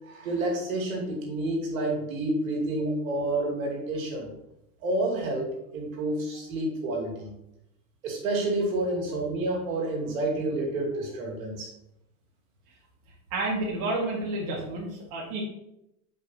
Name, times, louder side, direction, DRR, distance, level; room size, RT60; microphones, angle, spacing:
voice 1, 0.1-4.3 4.8-7.3 8.0-11.7, right 2 dB, 70° right, 0 dB, 2.4 m, -29 dB
voice 2, 13.3-15.4, right 2 dB, 45° right, -3 dB, 1.7 m, -30 dB
7.9 x 5.1 x 2.7 m, 0.83 s
supercardioid pair, 130°, 42 cm